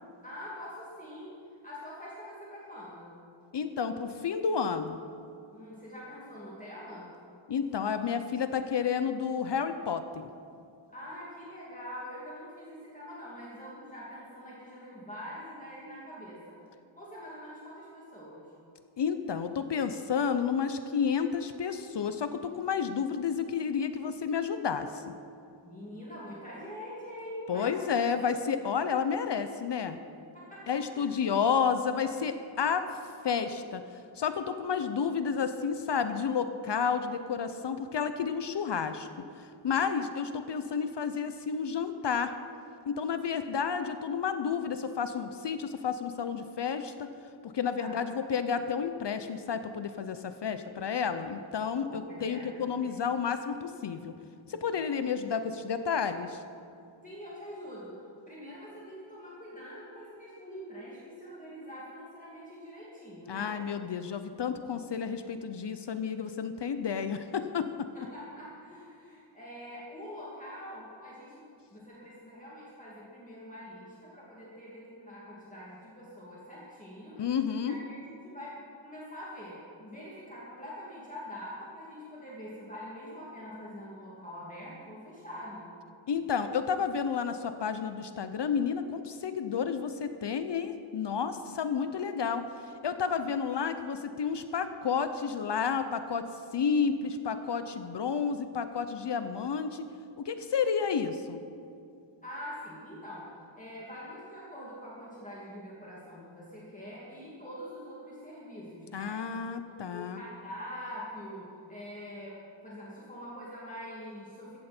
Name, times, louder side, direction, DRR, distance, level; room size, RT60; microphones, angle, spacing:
voice 1, 0.2-3.2 5.5-7.1 10.9-16.6 17.0-18.5 25.6-27.9 30.3-31.1 47.8-48.1 51.8-52.9 57.0-63.6 67.9-77.2 77.6-78.0 78.2-78.6 78.8-85.7 102.2-109.3 109.8-112.4 112.6-114.6, equal, 15° left, -7 dB, 2.7 m, -44 dB
voice 2, 3.5-5.0 7.5-10.3 19.0-25.0 27.5-30.0 30.7-32.9 33.2-33.8 34.2-39.1 39.4-42.3 42.9-47.1 47.4-54.2 54.5-56.4 63.3-67.9 77.2-77.8 86.1-92.4 92.8-96.2 96.5-99.9 100.2-101.4 108.9-110.2, left 6 dB, 55° left, 9 dB, 0.7 m, -31 dB
15.5 x 14.5 x 4.4 m, 2.5 s
wide cardioid pair, 155°, 49 cm